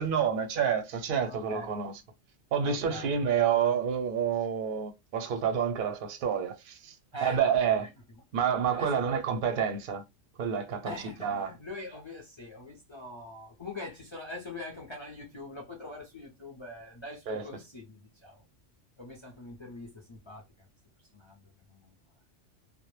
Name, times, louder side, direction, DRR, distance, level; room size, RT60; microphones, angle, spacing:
voice 1, 0.0-2.0 2.5-7.0 7.2-7.9 8.3-10.0 10.4-10.9 11.2-11.5 17.3-17.4, right 7 dB, 60° right, 0.6 m, -28 dB
voice 2, 1.2-1.8 2.6-3.2 7.1-7.9 8.7-9.0 10.8-18.4 19.0-20.7 21.0-22.0, left 2 dB, 45° left, 0.3 m, -43 dB
2.1 x 2.0 x 3.0 m
omnidirectional pair, 1.3 m